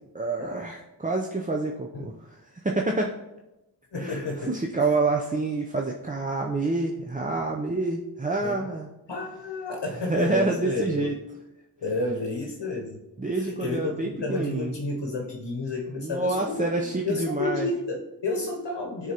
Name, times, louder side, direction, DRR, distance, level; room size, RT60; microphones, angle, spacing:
voice 1, 0.0-3.2 3.9-8.9 10.1-11.2 13.2-14.7 16.0-17.7, right 3 dB, 20° right, 0 dB, 0.5 m, -28 dB
voice 2, 3.9-4.5 8.4-8.7 9.1-11.1 11.8-13.0 13.4-19.1, left 2 dB, 85° left, 1 dB, 0.9 m, -31 dB
9.2 x 3.8 x 2.8 m, 0.98 s
wide cardioid pair, 55°, 41 cm